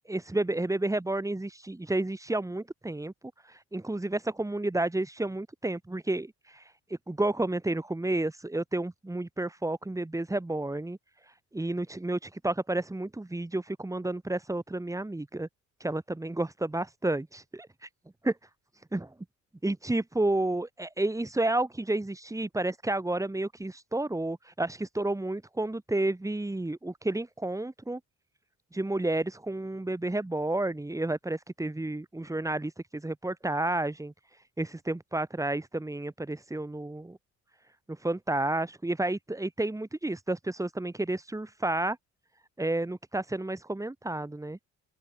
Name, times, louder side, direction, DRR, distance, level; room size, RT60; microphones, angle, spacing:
voice 1, 0.1-3.1 3.4-11.0 11.2-15.5 15.8-17.9 18.2-18.3 18.9-19.1 19.6-28.0 28.7-37.2 37.9-42.0 42.6-44.6, right 2 dB, 10° right, 2.1 m, -31 dB
open air
cardioid pair, 90°, 30 cm